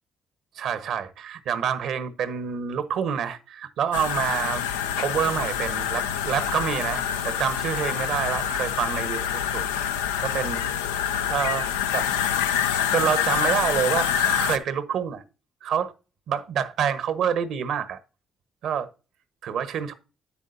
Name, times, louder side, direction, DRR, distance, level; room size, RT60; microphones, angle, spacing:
voice 1, 0.6-4.6 5.0-10.6 11.3-12.1 12.9-15.2 15.6-15.9 16.3-18.0 18.6-18.9 19.4-19.9, right 8 dB, 65° right, 1.0 m, -27 dB
sound 1, 3.9-14.6, left 9 dB, 90° left, 0.5 m, -26 dB
9.5 x 8.3 x 2.6 m
hypercardioid pair, 50°, 0 cm